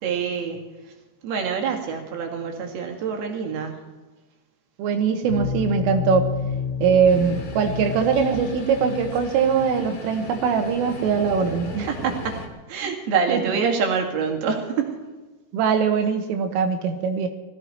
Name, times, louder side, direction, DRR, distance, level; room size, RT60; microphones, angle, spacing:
voice 1, 0.0-0.6 1.2-3.8 11.9-12.4 12.7-15.0, right 6 dB, 55° right, 2 dB, 3.7 m, -26 dB
voice 2, 4.8-6.3 6.8-11.9 13.3-13.4 15.5-17.3, right 6 dB, 80° right, 5 dB, 3.9 m, -21 dB
sound 1, 5.3-10.3, left 6 dB, 75° left, 2.0 m, -31 dB
sound 2, 7.0-12.5, left 4 dB, 45° left, 2.9 m, -37 dB
20.5 x 15.0 x 4.5 m, 1.2 s
omnidirectional pair, 5.9 m